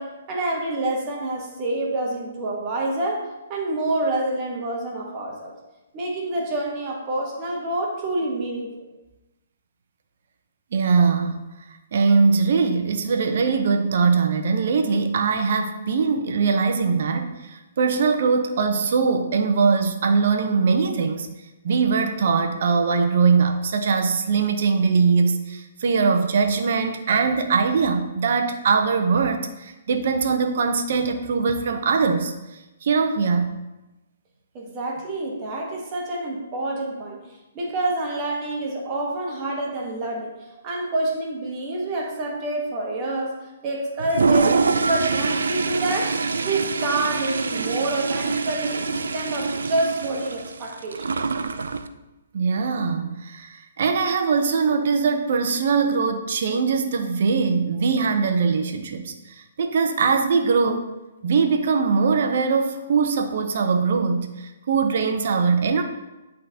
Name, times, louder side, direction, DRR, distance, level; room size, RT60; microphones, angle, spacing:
voice 1, 0.0-5.5 5.9-8.7 34.5-37.2 37.5-40.3 40.6-43.4 43.6-44.6 44.9-51.1, right 2 dB, 30° right, -1 dB, 1.3 m, -27 dB
voice 2, 10.7-11.5 11.9-21.3 21.6-32.3 32.8-33.5 52.3-60.9 61.2-65.8, right 5 dB, 60° right, 6 dB, 0.8 m, -21 dB
Toilet flush, 44.0-51.9, right 4 dB, 85° right, 0.4 m, -25 dB
11.0 x 3.8 x 2.8 m, 1.0 s
hypercardioid pair, 150°, 0 cm